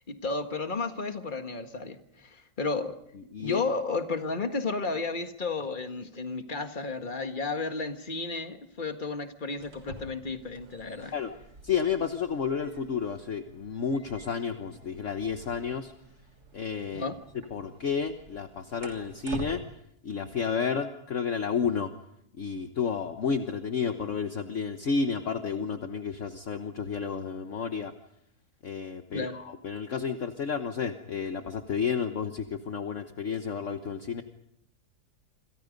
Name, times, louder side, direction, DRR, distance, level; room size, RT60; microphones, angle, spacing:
voice 1, 0.0-3.0 3.4-11.1 16.9-17.2 29.1-29.4, left 3 dB, 30° left, 6 dB, 1.8 m, -33 dB
sound 1, 9.5-19.6, right 1 dB, 70° right, 3.6 m, -48 dB
voice 2, 11.6-15.9 16.5-17.0 17.5-19.6 20.0-21.9 22.4-27.9 28.6-34.2, left 6 dB, 50° left, 7 dB, 1.4 m, -31 dB
28.5 x 27.0 x 5.3 m, 0.77 s
omnidirectional pair, 1.7 m